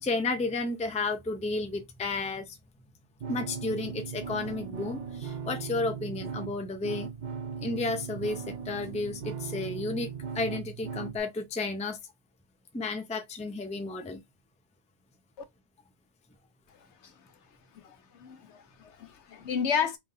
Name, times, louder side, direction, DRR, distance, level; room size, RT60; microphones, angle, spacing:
voice 1, 0.0-2.6 3.3-7.1 7.6-10.1 10.3-12.0 12.7-14.2, left 3 dB, 10° left, 0.4 m, -32 dB
sound 1, 3.2-11.2, right 6 dB, 50° right, 0.6 m, -38 dB
voice 2, 17.7-20.0, left 7 dB, 80° left, 1.0 m, -32 dB
3.8 x 3.5 x 2.6 m
omnidirectional pair, 1.2 m